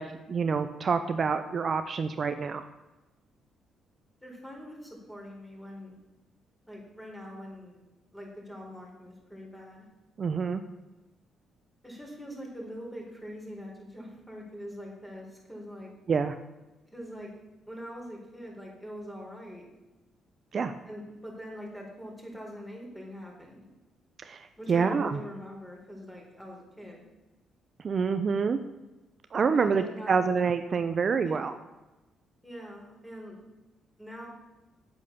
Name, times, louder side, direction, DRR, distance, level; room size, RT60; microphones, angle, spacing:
voice 1, 0.0-2.6 10.2-10.6 16.1-16.3 20.5-20.7 24.2-25.2 27.8-28.6 29.3-31.5, right 5 dB, 45° right, 9 dB, 0.7 m, -27 dB
voice 2, 4.2-6.0 6.7-7.8 8.1-9.9 11.8-15.9 16.9-17.3 17.7-19.7 20.9-23.6 24.6-27.0 29.5-30.2 31.2-31.4 32.4-33.4 34.0-34.3, equal, 5° left, -1 dB, 4.5 m, -43 dB
9.2 x 8.6 x 6.9 m, 1.1 s
cardioid pair, 90°, 0 cm